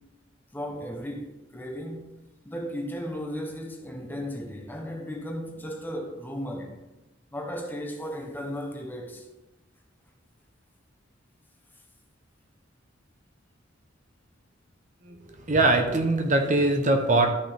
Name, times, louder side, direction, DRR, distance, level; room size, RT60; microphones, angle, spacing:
voice 1, 0.5-2.1 2.4-6.8 7.3-9.3, equal, 10° left, 1.0 m, -35 dB
voice 2, 15.5-17.3, right 2 dB, 40° right, 0.9 m, -22 dB
13.0 x 6.2 x 3.5 m
head